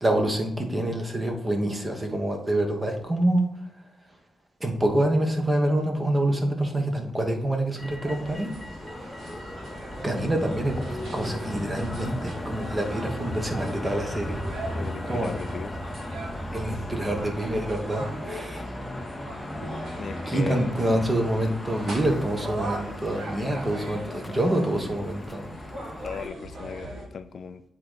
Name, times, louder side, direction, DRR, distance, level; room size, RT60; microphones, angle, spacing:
voice 1, 0.0-3.5 4.6-8.5 10.0-14.4 15.1-15.3 16.5-18.6 20.3-25.5, right 1 dB, 20° right, 3 dB, 1.3 m, -26 dB
Motor vehicle (road), 7.8-26.3, left 1 dB, 10° left, 0.7 m, -36 dB
sound 1, 8.0-27.1, right 1 dB, 65° right, 2.5 m, -41 dB
voice 2, 14.7-15.8 20.0-20.6 23.4-23.5 26.0-27.6, left 6 dB, 55° left, 10 dB, 0.4 m, -37 dB
7.7 x 3.8 x 4.0 m, 0.78 s
wide cardioid pair, 125°, 0 cm